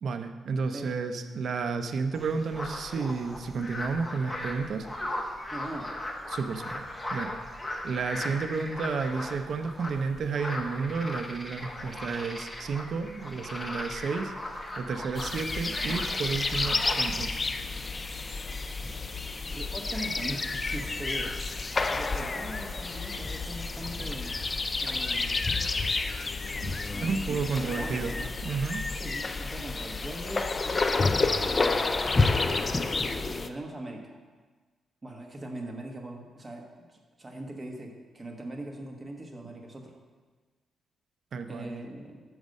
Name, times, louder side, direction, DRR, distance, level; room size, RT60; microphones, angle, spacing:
voice 1, 0.0-4.9 6.3-6.7 7.1-7.3 7.8-14.3 14.8-17.4 26.6-26.7 27.0-28.1 28.4-28.8 41.3-41.7, right 5 dB, 60° right, 8 dB, 0.5 m, -31 dB
sound 1, 2.1-17.0, left 1 dB, 15° left, 1.0 m, -38 dB
voice 2, 5.5-6.0 19.5-21.5 21.9-24.3 24.8-25.7 26.9-28.3 28.9-30.9 31.4-32.9 33.4-34.2 35.0-40.0 41.5-42.2, right 1 dB, 25° right, 2 dB, 1.1 m, -41 dB
sound 2, 15.1-33.5, left 3 dB, 30° left, 0.4 m, -30 dB
6.4 x 6.0 x 5.3 m, 1.4 s
cardioid pair, 95°, 0 cm